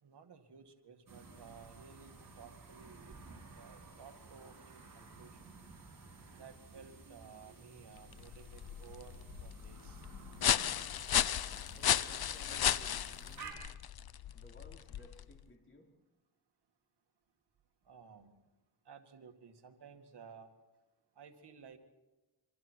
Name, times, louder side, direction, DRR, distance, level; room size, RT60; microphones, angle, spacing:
voice 1, 0.0-3.1 3.6-5.6 6.4-10.1 17.9-18.5 18.9-20.5 21.2-21.8, right 6 dB, 70° right, 5 dB, 2.2 m, -56 dB
sound 1, 1.1-13.5, right 4 dB, 50° right, 7.0 m, -54 dB
sound 2, 8.0-15.4, left 10 dB, 60° left, 0.8 m, -35 dB
voice 2, 11.7-13.6 14.3-15.9, left 1 dB, 30° left, 1 dB, 4.4 m, -59 dB
27.0 x 25.5 x 4.6 m, 1.1 s
cardioid pair, 95°, 41 cm